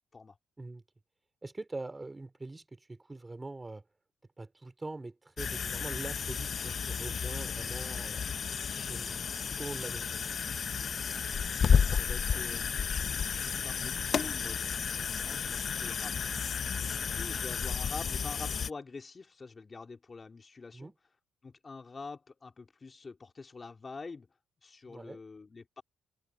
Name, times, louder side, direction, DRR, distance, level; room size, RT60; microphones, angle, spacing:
voice 1, 1.4-3.8 4.4-8.3 8.8-10.1 20.7-20.9 24.9-25.2, right 2 dB, 20° right, 3.8 m, -43 dB
sound 1, 5.4-18.7, left 6 dB, 50° left, 0.6 m, -32 dB
voice 2, 11.6-20.9 21.4-24.3 24.6-25.8, left 4 dB, 30° left, 3.4 m, -47 dB
cardioid pair, 90°, 0 cm